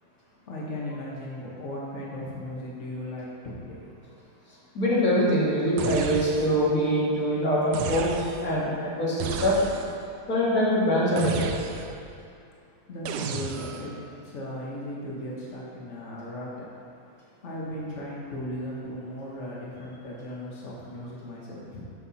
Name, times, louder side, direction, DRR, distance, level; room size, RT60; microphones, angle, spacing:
voice 1, 0.5-3.9 12.9-13.9 14.2-16.5 17.4-21.8, left 1 dB, 80° left, -5 dB, 0.6 m, -36 dB
voice 2, 4.7-9.6 10.3-11.5, equal, 30° left, -8 dB, 2.4 m, -24 dB
sound 1, 5.8-6.7 7.7-8.6 9.2-10.1 11.2-12.1 13.1-14.0, right 7 dB, 85° right, 1.4 m, -34 dB
12.5 x 5.8 x 4.2 m, 2.5 s
omnidirectional pair, 3.4 m